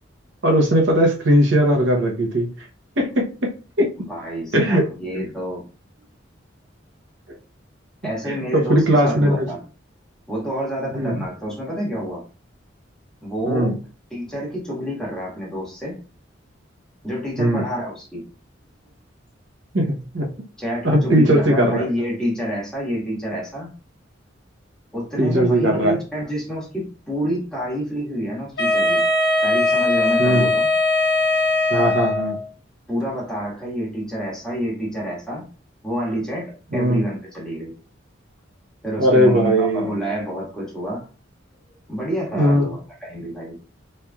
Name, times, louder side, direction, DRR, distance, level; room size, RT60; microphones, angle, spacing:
voice 1, 0.4-2.5 3.0-3.5 3.8-3.9 4.5-4.9 8.3-9.5 10.9-11.2 13.5-13.7 17.4-17.6 19.7-20.3 20.8-21.9 25.2-26.0 30.2-30.5 31.7-32.4 36.7-37.0 39.0-39.9 42.3-42.7, equal, 75° right, 0.9 m, -18 dB
voice 2, 4.0-5.6 8.0-9.6 10.3-12.2 13.2-13.8 14.1-16.0 17.0-18.2 20.6-23.7 24.9-29.0 29.4-30.7 32.9-35.4 35.8-37.7 38.8-41.1 41.9-43.6, equal, 5° left, 1.6 m, -28 dB
Wind instrument woodwind instrument, 28.6-32.4, left 2 dB, 55° left, 0.9 m, -20 dB
4.3 x 3.3 x 2.3 m
head